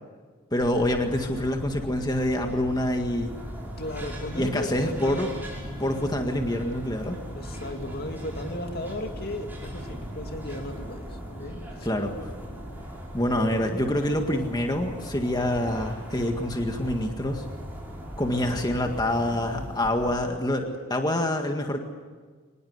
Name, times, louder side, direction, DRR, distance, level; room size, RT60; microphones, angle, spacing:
voice 1, 0.5-3.3 4.3-5.3 5.8-7.2 11.8-12.1 13.1-17.4 18.2-21.8, left 1 dB, 20° left, 4 dB, 1.8 m, -26 dB
sound 1, 0.6-20.2, equal, 10° right, 6.1 m, -39 dB
sound 2, 2.4-12.8, left 1 dB, 80° left, 3.8 m, -48 dB
voice 2, 3.8-5.4 7.3-11.9 18.6-19.0, left 1 dB, 55° left, 5 dB, 2.4 m, -36 dB
25.0 x 20.0 x 8.0 m, 1.5 s
head